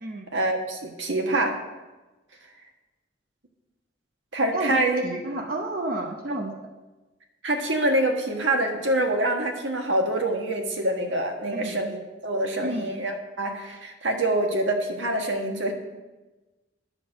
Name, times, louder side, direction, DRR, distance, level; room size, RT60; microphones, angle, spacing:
voice 1, 0.3-1.5 4.3-5.0 6.3-6.4 7.4-15.7, right 1 dB, 90° right, 2 dB, 1.5 m, -25 dB
voice 2, 4.5-6.5 11.5-11.8 12.6-12.9, right 1 dB, 50° right, 3 dB, 0.8 m, -31 dB
9.7 x 6.3 x 6.6 m, 1.1 s
head